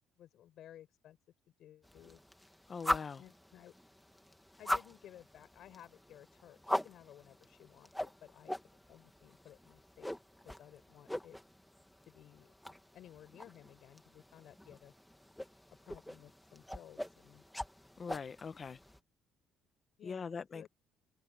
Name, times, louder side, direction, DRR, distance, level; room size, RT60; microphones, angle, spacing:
voice 1, 0.2-1.2 1.6-2.2 3.2-3.7 4.6-8.5 8.9-10.1 10.4-11.4 12.1-12.5 12.9-14.9 15.8-17.4 20.0-20.7, left 11 dB, 55° left, 5.0 m, -57 dB
sound 1, 1.8-19.0, left 1 dB, 5° left, 1.5 m, -42 dB
voice 2, 2.7-3.2 18.0-18.8 20.0-20.7, left 5 dB, 25° left, 0.9 m, -42 dB
cardioid pair, 160°, 0 cm